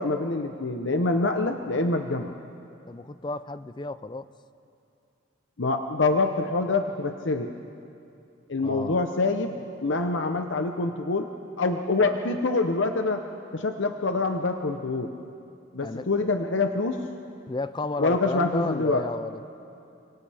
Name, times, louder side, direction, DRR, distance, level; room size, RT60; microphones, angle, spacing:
voice 1, 0.0-2.3 5.6-7.5 8.5-9.6 9.8-11.3 11.6-13.2 13.5-15.1 15.7-17.0 18.0-19.0, left 3 dB, 70° left, 5 dB, 0.9 m, -25 dB
voice 2, 2.9-4.3 8.6-9.0 15.8-16.1 17.5-19.5, left 3 dB, 20° left, 13 dB, 0.4 m, -33 dB
29.5 x 26.0 x 3.5 m, 2.6 s
head